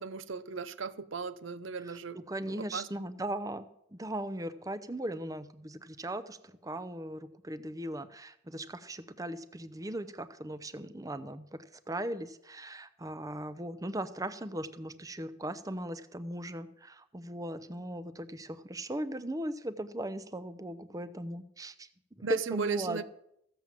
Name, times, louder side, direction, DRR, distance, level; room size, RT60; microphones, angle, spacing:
voice 1, 0.0-3.0 22.2-23.0, right 5 dB, 65° right, 0.7 m, -37 dB
voice 2, 1.8-3.6 3.9-21.9 22.2-23.0, right 1 dB, 15° right, 0.7 m, -38 dB
15.0 x 7.3 x 7.6 m
head